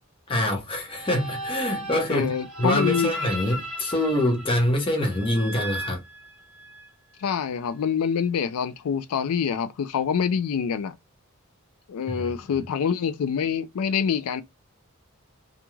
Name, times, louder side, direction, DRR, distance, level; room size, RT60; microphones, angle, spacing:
voice 1, 0.3-2.3 2.6-6.0 12.1-12.2, left 1 dB, 25° left, 0.7 m, -25 dB
sound 1, 0.9-6.9, right 1 dB, 5° right, 1.0 m, -36 dB
voice 2, 2.1-3.1 7.2-10.9 11.9-14.4, left 7 dB, 85° left, 0.4 m, -26 dB
2.4 x 2.2 x 3.0 m
head